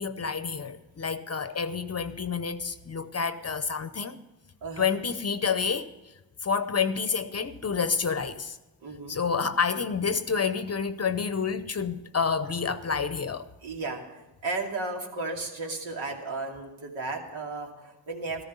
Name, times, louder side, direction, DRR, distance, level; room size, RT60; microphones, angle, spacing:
voice 1, 0.0-4.2 4.8-5.9 6.4-8.6 9.1-13.5, left 5 dB, 35° left, 0.8 m, -29 dB
voice 2, 4.6-4.9 8.8-9.2 13.6-18.4, right 3 dB, 75° right, 2.7 m, -34 dB
14.0 x 13.5 x 5.4 m
cardioid pair, 70°, 46 cm